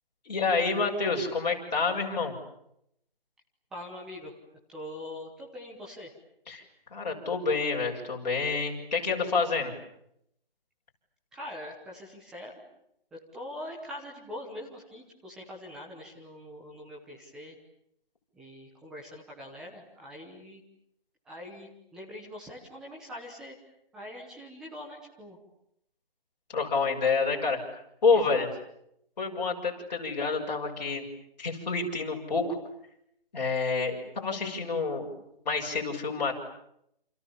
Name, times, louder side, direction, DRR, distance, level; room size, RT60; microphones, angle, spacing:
voice 1, 0.3-2.3 6.5-6.6 6.9-9.7 26.5-27.6 28.0-28.5 29.2-31.0 31.4-32.6 33.3-35.1 35.5-36.4, left 4 dB, 45° left, -1 dB, 6.9 m, -28 dB
voice 2, 3.7-4.4 4.7-6.1 11.3-12.5 13.3-17.5 18.3-20.6 21.2-23.5 23.9-25.4 28.1-28.4, left 1 dB, ahead, -2 dB, 1.0 m, -43 dB
29.5 x 28.0 x 7.2 m, 0.77 s
hypercardioid pair, 170°, 30 cm